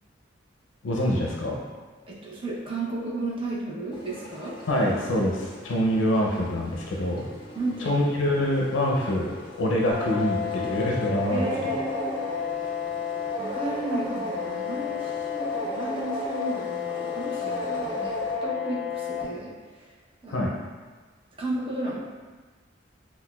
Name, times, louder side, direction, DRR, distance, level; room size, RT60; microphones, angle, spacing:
voice 1, 0.8-1.6 4.7-7.3 7.8-9.3 9.6-11.5 20.3-20.5, left 1 dB, 80° left, -2 dB, 0.5 m, -25 dB
voice 2, 2.1-4.5 7.5-8.0 11.3-12.5 13.4-19.9 20.2-20.5 21.4-22.0, right 1 dB, 30° right, -6 dB, 0.6 m, -33 dB
sound 1, 3.9-18.4, left 1 dB, 25° left, 0.5 m, -44 dB
sound 2, 9.9-19.2, left 4 dB, 5° left, 1.3 m, -31 dB
5.7 x 2.2 x 2.2 m, 1.4 s
head